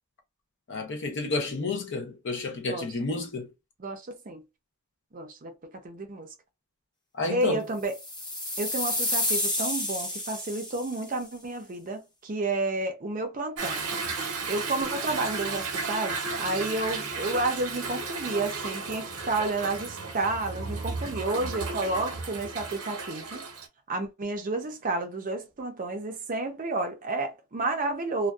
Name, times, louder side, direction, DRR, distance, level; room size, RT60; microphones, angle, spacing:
voice 1, 0.7-3.5 7.1-7.6, left 3 dB, 55° left, 0.6 m, -31 dB
voice 2, 3.8-4.4 5.1-6.3 7.3-7.9 8.6-13.9 14.5-23.4 23.9-28.3, right 2 dB, 40° right, 0.5 m, -31 dB
sound 1, 7.9-11.1, left 1 dB, 20° left, 0.8 m, -30 dB
Toilet flush / Drip / Trickle dribble, 13.6-23.7, right 4 dB, 85° right, 0.8 m, -34 dB
2.5 x 2.2 x 2.2 m
head